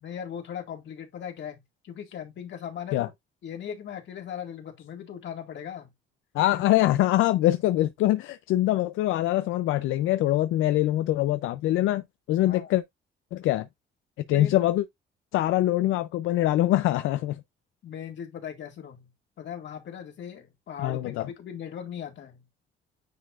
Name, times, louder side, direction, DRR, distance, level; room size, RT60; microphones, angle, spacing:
voice 1, 0.0-3.1 3.4-5.9 6.5-6.6 7.3-7.4 12.4-12.7 14.3-14.6 17.8-19.1 19.4-22.4, left 9 dB, 65° left, 2.1 m, -39 dB
voice 2, 6.3-12.0 12.3-12.8 13.3-13.7 14.3-14.8 15.3-17.4 20.8-21.3, left 15 dB, 90° left, 0.5 m, -23 dB
9.4 x 4.4 x 2.5 m
cardioid pair, 90°, 20 cm